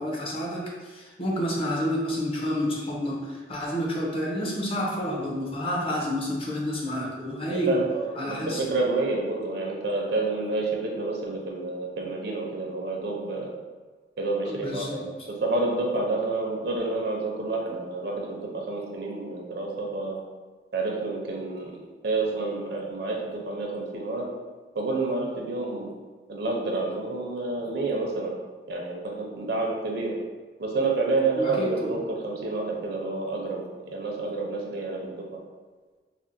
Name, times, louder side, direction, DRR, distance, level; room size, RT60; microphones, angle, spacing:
voice 1, 0.0-7.8 8.2-8.7 14.5-15.0 31.4-32.0, equal, 30° left, -3 dB, 0.6 m, -29 dB
voice 2, 7.7-13.5 14.2-14.9 15.3-20.2 20.7-21.7 22.0-24.3 24.7-25.9 26.3-28.3 28.7-30.2 30.6-35.4, right 3 dB, 60° right, -1 dB, 0.6 m, -29 dB
4.2 x 2.1 x 2.6 m, 1.4 s
head